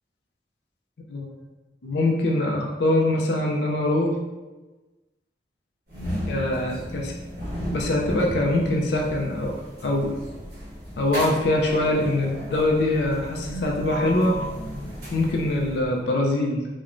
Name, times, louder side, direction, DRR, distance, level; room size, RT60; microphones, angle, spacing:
voice 1, 1.8-4.1 6.3-7.1 7.7-9.5 9.8-10.2 11.0-14.4 15.1-16.7, left 1 dB, 70° left, 0 dB, 0.4 m, -23 dB
sound 1, 5.9-16.1, equal, 55° right, 1.1 m, -34 dB
3.0 x 2.1 x 2.4 m, 1.2 s
head